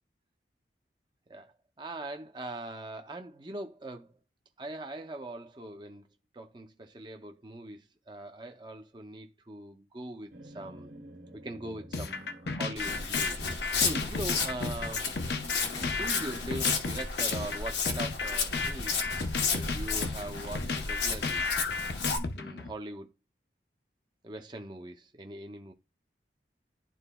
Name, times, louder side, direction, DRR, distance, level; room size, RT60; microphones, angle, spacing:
voice 1, 1.3-4.1 4.6-6.1 6.3-10.9 11.4-15.1 15.6-19.0 19.5-21.4 22.4-23.1 24.2-25.7, right 1 dB, 25° right, 0.6 m, -41 dB
sound 1, 10.3-14.8, right 1 dB, 75° right, 1.6 m, -51 dB
sound 2, 11.9-22.7, left 4 dB, 70° left, 0.7 m, -34 dB
Walk footsteps, 12.8-22.2, left 5 dB, 85° left, 1.2 m, -32 dB
11.5 x 3.9 x 2.3 m
head